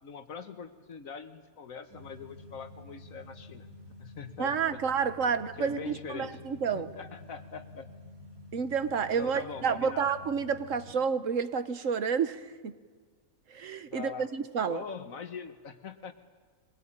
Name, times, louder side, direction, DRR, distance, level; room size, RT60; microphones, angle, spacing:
voice 1, 0.0-3.7 4.0-4.8 5.3-6.4 6.7-7.9 8.6-8.7 9.2-10.1 13.9-14.3 14.7-16.1, left 6 dB, 75° left, 9 dB, 1.7 m, -42 dB
sound 1, 1.9-10.9, left 2 dB, 85° right, 3.5 m, -49 dB
voice 2, 4.4-6.9 8.5-12.7 13.5-14.8, right 6 dB, 65° right, 11 dB, 1.4 m, -30 dB
23.5 x 20.5 x 8.9 m, 1.5 s
omnidirectional pair, 1.5 m